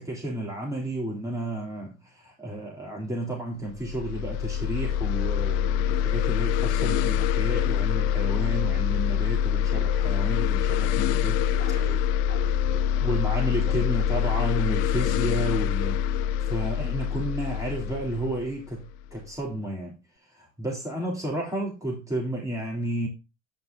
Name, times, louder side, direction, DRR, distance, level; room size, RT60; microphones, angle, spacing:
voice 1, 0.0-11.4 13.0-16.0 16.5-18.8 19.1-20.0 20.3-23.1, right 1 dB, 10° right, 3.4 m, -32 dB
sound 1, 3.7-19.2, left 9 dB, 50° left, 0.4 m, -25 dB
voice 2, 11.4-13.2 13.7-13.9, right 5 dB, 50° right, 5.9 m, -44 dB
9.9 x 5.4 x 4.0 m
figure-of-eight pair, 70°, 38 cm